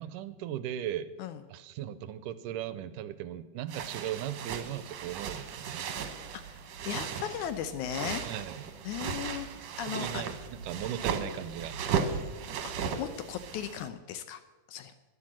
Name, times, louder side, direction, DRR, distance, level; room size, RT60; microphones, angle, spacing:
voice 1, 0.0-1.1 1.5-5.8 8.2-8.7 9.9-11.9, right 11 dB, 80° right, 13 dB, 2.1 m, -37 dB
sound 1, 3.7-13.9, right 6 dB, 60° right, 2.0 m, -36 dB
voice 2, 6.9-8.3 8.9-10.2 12.6-14.4 14.7-14.9, left 10 dB, 75° left, 11 dB, 1.9 m, -37 dB
11.5 x 11.0 x 7.4 m, 1.2 s
omnidirectional pair, 3.9 m